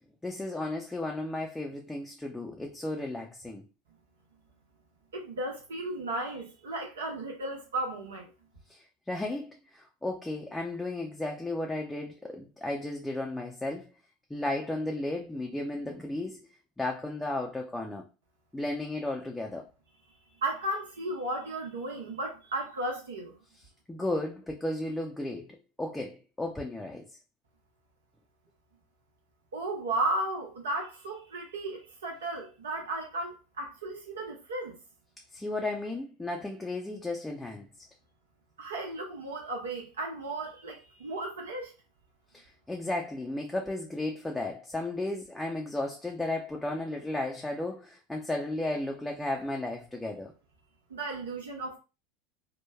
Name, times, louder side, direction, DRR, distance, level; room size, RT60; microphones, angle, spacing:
voice 1, 0.2-3.7 8.7-13.9 14.3-16.4 16.8-18.0 18.5-19.7 23.9-27.1 35.3-37.7 42.3-50.3, left 2 dB, 10° left, 0.4 m, -34 dB
voice 2, 5.1-8.3 20.4-23.3 29.5-34.8 38.6-41.7 50.9-51.8, right 2 dB, 80° right, 0.9 m, -34 dB
3.1 x 2.2 x 2.2 m
hypercardioid pair, 80°, 0 cm